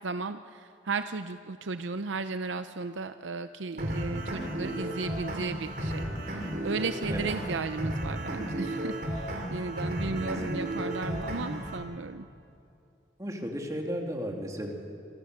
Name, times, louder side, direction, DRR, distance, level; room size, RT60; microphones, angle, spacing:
voice 1, 0.0-12.3, right 4 dB, 85° right, 10 dB, 0.6 m, -35 dB
sound 1, 3.8-11.8, right 1 dB, 50° right, 4.1 m, -33 dB
voice 2, 10.1-10.5 13.2-14.7, equal, 20° right, 1 dB, 2.6 m, -34 dB
26.5 x 25.0 x 6.6 m, 2.7 s
head